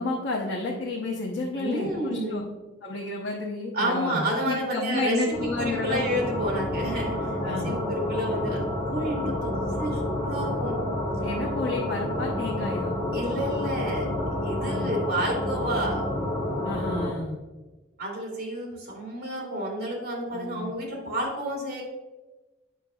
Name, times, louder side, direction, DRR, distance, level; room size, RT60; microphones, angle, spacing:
voice 1, 0.0-2.4 2.8-6.1 7.2-7.8 11.2-12.9 14.6-14.9 16.6-17.4 20.3-20.7, left 2 dB, 70° left, -2 dB, 0.9 m, -31 dB
voice 2, 1.5-2.5 3.7-10.8 13.1-14.1 14.4-16.0 18.0-21.8, right 1 dB, 55° right, -2 dB, 2.2 m, -30 dB
sound 1, 5.3-17.1, left 1 dB, 20° left, 1.7 m, -29 dB
8.4 x 5.9 x 2.3 m, 1.1 s
head